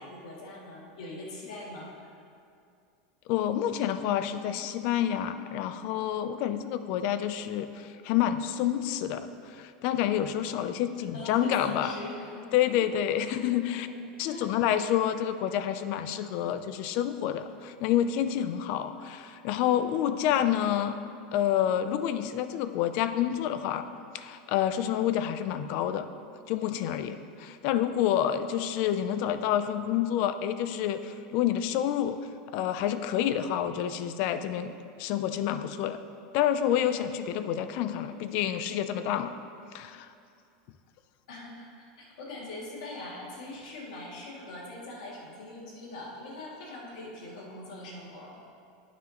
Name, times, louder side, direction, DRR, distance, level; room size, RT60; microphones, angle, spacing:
voice 1, 0.0-2.2 11.0-12.8 13.3-13.9 14.3-14.5 41.3-41.7 42.0-48.3, left 2 dB, 80° left, -4 dB, 2.2 m, -42 dB
voice 2, 3.3-11.9 12.5-13.9 14.2-21.0 21.3-23.9 24.1-26.1 26.5-32.2 32.5-34.7 35.0-36.0 36.3-39.3 39.7-40.1, left 10 dB, 40° left, 11 dB, 0.4 m, -28 dB
9.3 x 9.3 x 2.9 m, 2.4 s
supercardioid pair, 170°, 4 cm